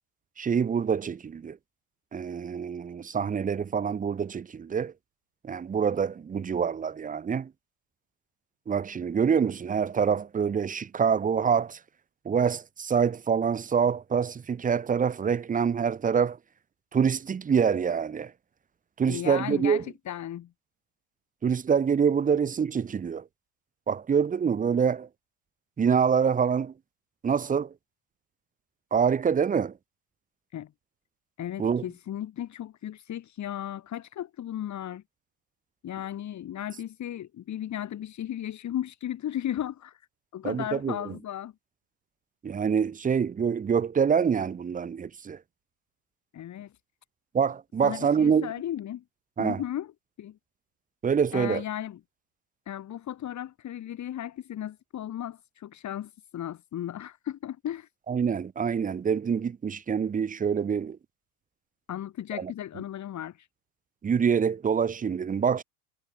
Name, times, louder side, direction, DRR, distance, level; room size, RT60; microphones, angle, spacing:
voice 1, 0.4-1.6 2.1-4.9 5.4-7.5 8.7-11.8 12.2-16.4 16.9-18.3 19.0-19.8 21.4-23.2 23.9-25.1 25.8-26.7 27.2-27.7 28.9-29.7 31.6-31.8 40.4-41.0 42.4-45.4 47.3-48.5 49.4-49.6 51.0-51.6 58.1-61.0 62.4-62.5 64.0-65.6, right 7 dB, 20° right, 1.0 m, -26 dB
voice 2, 19.1-20.5 30.5-30.7 31.4-35.0 35.8-40.0 40.3-41.5 46.3-46.7 47.8-49.0 49.4-49.9 50.2-50.4 51.3-52.0 52.7-57.9 61.9-63.5, left 11 dB, 40° left, 4.2 m, -35 dB
hypercardioid pair, 80°, 44 cm